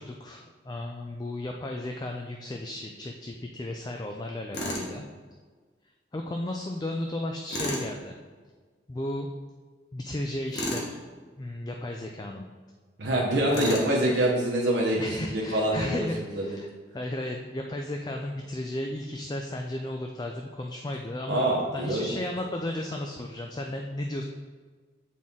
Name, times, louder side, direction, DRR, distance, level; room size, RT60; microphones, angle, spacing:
voice 1, 0.0-5.1 6.1-8.2 8.9-9.3 9.9-11.0 11.4-12.4 13.5-13.8 15.0-16.7 16.9-21.5 21.7-24.2, left 1 dB, 20° left, 2 dB, 0.3 m, -34 dB
Tools, 4.5-4.9 7.5-7.9 10.5-10.9 13.5-13.9, left 1 dB, 70° left, 1.2 m, -31 dB
voice 2, 13.0-16.1 16.3-16.4 21.3-22.1, right 1 dB, 85° right, -4 dB, 1.0 m, -25 dB
7.5 x 4.2 x 3.6 m, 1.4 s
head